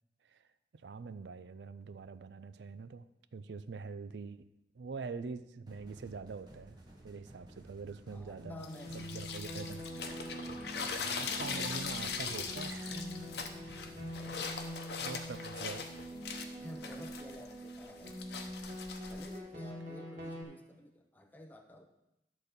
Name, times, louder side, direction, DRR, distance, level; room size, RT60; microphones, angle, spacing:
voice 1, 0.7-4.5 4.8-6.8 7.0-8.6 8.9-9.8 10.2-10.5 11.0-13.1 13.6-13.8 15.0-15.9, right 4 dB, 75° right, 12 dB, 0.4 m, -44 dB
sound 1, 5.7-14.4, right 1 dB, 25° right, 1.2 m, -55 dB
voice 2, 8.1-9.3 14.1-15.1 16.6-18.2 19.1-21.9, left 1 dB, 10° left, 3 dB, 0.5 m, -52 dB
sound 2, 8.4-20.4, equal, 45° right, 2.0 m, -44 dB
sound 3, 8.6-19.4, left 5 dB, 65° left, 0.8 m, -41 dB
11.0 x 4.1 x 6.6 m, 0.89 s
head